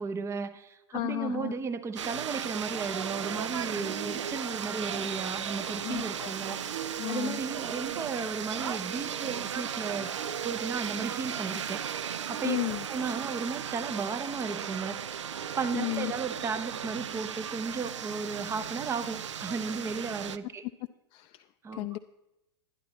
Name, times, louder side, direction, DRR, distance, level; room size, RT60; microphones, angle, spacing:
voice 1, 0.0-10.1 10.4-12.6 12.9-15.2 15.6-20.6 21.6-22.0, right 5 dB, 20° right, 11 dB, 0.6 m, -35 dB
voice 2, 0.9-1.5 5.8-6.3 7.0-7.4 12.4-12.8 15.7-16.1 21.1-21.4 21.7-22.0, left 20 dB, 35° left, 7 dB, 0.4 m, -33 dB
sound 1, 2.0-20.4, right 8 dB, 80° right, 0.5 m, -36 dB
sound 2, 5.7-6.8 7.1-9.5 9.8-11.7 13.1-13.9 15.3-16.0 17.3-18.0 19.1-19.8, right 4 dB, 55° right, 1.9 m, -57 dB
11.0 x 11.0 x 4.1 m, 0.94 s
hypercardioid pair, 95°, 15 cm